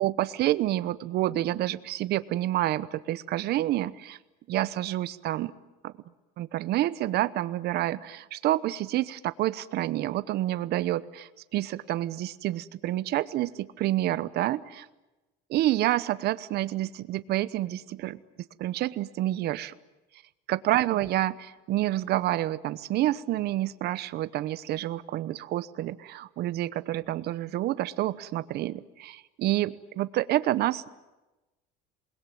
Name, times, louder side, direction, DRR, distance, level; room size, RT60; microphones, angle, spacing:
voice 1, 0.0-4.2 4.5-5.5 5.8-5.9 6.4-14.9 15.5-18.2 18.6-19.7 20.5-30.9, right 14 dB, 55° right, 16 dB, 1.0 m, -28 dB
28.0 x 21.0 x 9.3 m, 1.1 s
cardioid pair, 135°, 20 cm